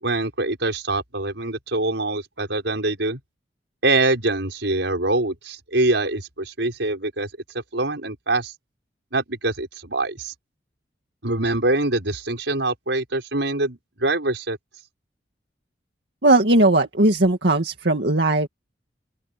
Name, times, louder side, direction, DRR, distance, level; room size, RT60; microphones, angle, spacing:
voice 1, 0.0-3.2 3.8-7.3 7.7-8.5 9.1-10.3 11.2-14.6, right 2 dB, 85° right, 5.6 m, -24 dB
voice 2, 16.2-18.5, right 2 dB, 70° right, 2.1 m, -18 dB
open air
head